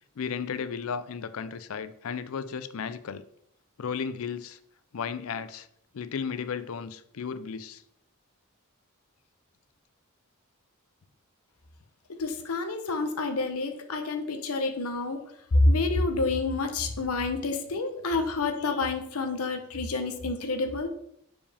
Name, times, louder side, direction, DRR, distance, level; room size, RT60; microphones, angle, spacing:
voice 1, 0.2-3.2 3.8-4.6 4.9-5.7 5.9-7.8, left 6 dB, 70° left, 13 dB, 0.5 m, -34 dB
voice 2, 12.2-15.2 15.5-20.9, left 2 dB, 90° left, 6 dB, 0.8 m, -28 dB
7.1 x 4.8 x 3.4 m, 0.71 s
head